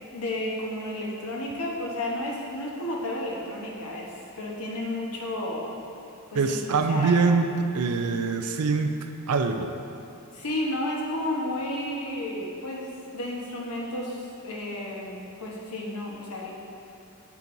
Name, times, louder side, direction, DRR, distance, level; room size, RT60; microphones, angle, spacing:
voice 1, 0.1-5.7 6.3-7.3 7.9-8.2 10.3-16.5, left 1 dB, 75° left, -2 dB, 1.1 m, -32 dB
voice 2, 6.3-7.5 7.7-9.7, right 4 dB, 80° right, 6 dB, 0.5 m, -24 dB
8.2 x 5.9 x 2.6 m, 2.7 s
head